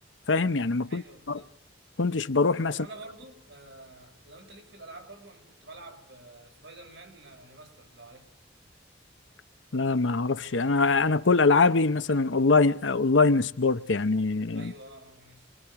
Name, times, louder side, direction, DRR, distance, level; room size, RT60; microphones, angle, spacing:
voice 1, 0.3-1.4 2.0-2.8 9.7-14.7, left 3 dB, 90° left, 0.8 m, -23 dB
voice 2, 0.8-1.5 2.7-8.3 14.5-15.5, right 2 dB, 75° right, 5.8 m, -48 dB
27.5 x 22.0 x 4.8 m
head